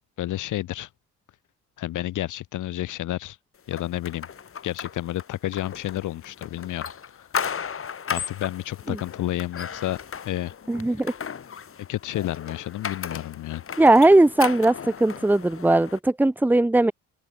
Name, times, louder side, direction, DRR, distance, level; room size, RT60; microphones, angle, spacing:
voice 1, 0.2-0.9 1.8-3.4 3.7-4.3 4.6-6.9 7.2-7.3 8.1-10.0 10.2-10.5 11.9-13.6, left 14 dB, 85° left, 4.4 m, -30 dB
sound 1, 3.7-16.0, left 7 dB, 45° left, 4.1 m, -36 dB
voice 2, 10.7-11.1 13.8-16.9, right 2 dB, 5° right, 0.6 m, -18 dB
open air
cardioid pair, 90°, 30 cm